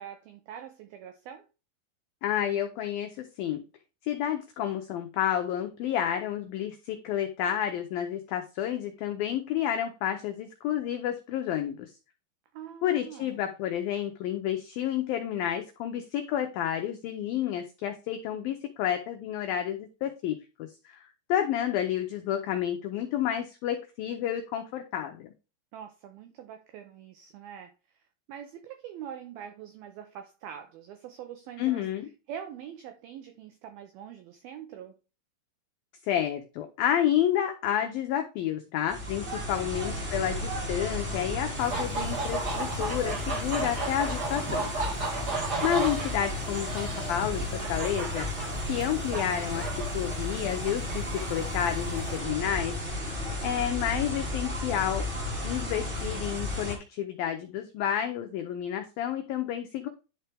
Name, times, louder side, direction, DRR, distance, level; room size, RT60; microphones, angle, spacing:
voice 1, 0.0-1.5 12.5-13.4 25.7-28.0 28.3-31.9 32.3-34.9 39.6-40.3 45.6-46.3, right 9 dB, 80° right, 2.1 m, -44 dB
voice 2, 2.2-3.6 4.0-11.9 12.8-21.0 21.3-25.3 31.6-32.1 36.0-44.7 45.6-48.3 48.7-49.6 49.9-52.8 53.4-55.1 55.4-59.9, left 10 dB, 90° left, 2.0 m, -30 dB
sound 1, 38.9-56.8, left 1 dB, 15° right, 2.3 m, -33 dB
sound 2, 41.6-52.2, right 3 dB, 65° right, 0.9 m, -35 dB
11.0 x 4.4 x 3.4 m
omnidirectional pair, 5.2 m